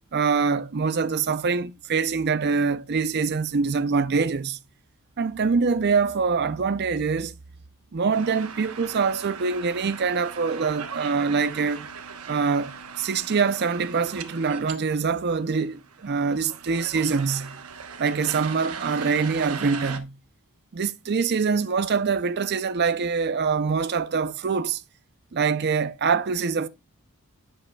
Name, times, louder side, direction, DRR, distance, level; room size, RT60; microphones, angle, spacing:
voice 1, 0.1-4.6 5.2-7.4 7.9-11.9 12.3-17.6 18.0-20.2 20.7-24.8 25.3-26.7, right 5 dB, 50° right, 0.5 m, -24 dB
sound 1, 8.1-14.7 15.0-15.1 15.2-20.0, right 6 dB, 80° right, 1.0 m, -39 dB
11.0 x 7.8 x 2.3 m
head